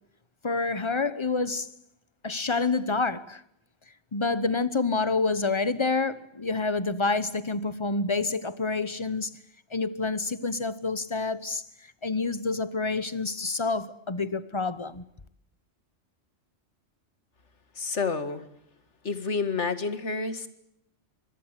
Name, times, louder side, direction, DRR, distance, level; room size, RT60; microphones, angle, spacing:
voice 1, 0.4-1.7 2.2-3.4 4.1-9.4 9.7-11.6 12.0-15.1, left 3 dB, 25° left, 1.0 m, -28 dB
voice 2, 17.8-18.4 19.0-20.5, left 4 dB, 70° left, 2.2 m, -29 dB
25.0 x 21.0 x 8.2 m
omnidirectional pair, 1.3 m